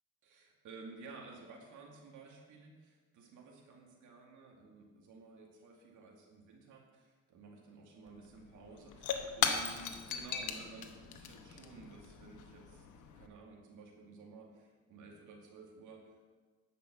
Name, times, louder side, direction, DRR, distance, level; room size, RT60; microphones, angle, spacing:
voice 1, 0.2-12.9 13.1-16.3, right 3 dB, 80° right, -1 dB, 2.2 m, -54 dB
Shatter / Crushing, 8.1-8.2 8.4-13.3, left 7 dB, 80° left, 1.1 m, -38 dB
11.0 x 5.9 x 7.7 m, 1.4 s
cardioid pair, 90°, 30 cm